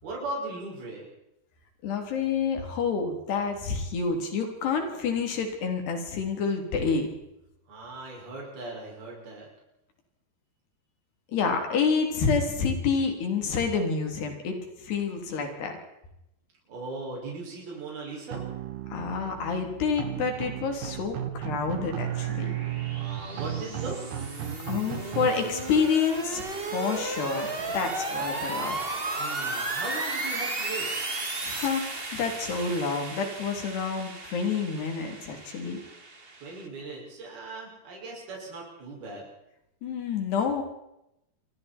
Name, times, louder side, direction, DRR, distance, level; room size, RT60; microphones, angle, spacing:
voice 1, 0.0-1.1 7.7-9.5 16.7-18.4 22.9-24.0 29.2-30.9 36.4-39.3, right 2 dB, 70° right, -3 dB, 8.3 m, -38 dB
voice 2, 1.8-7.1 11.3-15.8 18.9-22.6 24.7-26.4 26.7-28.8 31.4-35.8 39.8-40.6, left 5 dB, 85° left, 3 dB, 5.6 m, -28 dB
sound 1, 18.3-25.3, right 11 dB, 90° right, 4.2 m, -34 dB
sound 2, 20.7-36.7, right 2 dB, 20° right, 1.6 m, -35 dB
29.0 x 23.5 x 4.6 m, 0.85 s
omnidirectional pair, 4.6 m